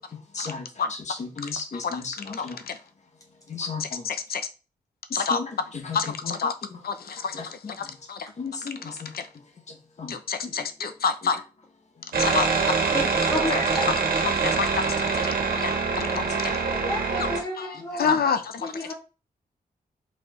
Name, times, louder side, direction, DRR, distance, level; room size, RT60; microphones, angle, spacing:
voice 1, 0.3-2.7 3.5-4.1 5.1-6.8 7.3-8.0 8.3-10.7 11.2-11.3 11.9-12.2 15.4-15.5 16.0-16.9 17.7-18.2, left 4 dB, 50° left, 1.3 m, -37 dB
voice 2, 2.4-2.8 4.0-4.4 5.1-5.4 5.9-6.5 6.8-7.4 7.8-8.3 9.1-9.2 10.1-11.4 12.2-12.5 13.5-13.6 14.2-16.5 17.2-17.3 17.6-18.9, left 5 dB, 90° left, 0.8 m, -28 dB
sound 1, 12.1-17.4, right 5 dB, 75° right, 1.4 m, -24 dB
voice 3, 12.9-13.9 15.6-15.7 16.8-18.1 18.6-18.9, equal, 20° left, 1.7 m, -31 dB
5.4 x 4.8 x 4.3 m
wide cardioid pair, 180°, 15 cm